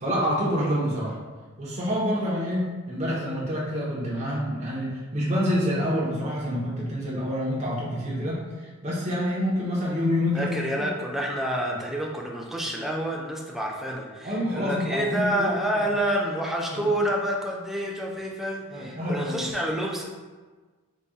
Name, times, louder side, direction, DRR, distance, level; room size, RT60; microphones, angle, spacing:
voice 1, 0.0-1.2 1.6-10.9 11.7-11.8 14.2-15.6 16.7-16.9 18.7-19.4, equal, 30° right, -6 dB, 0.7 m, -27 dB
voice 2, 10.3-20.0, right 1 dB, ahead, -1 dB, 0.3 m, -28 dB
3.9 x 2.2 x 3.5 m, 1.3 s
head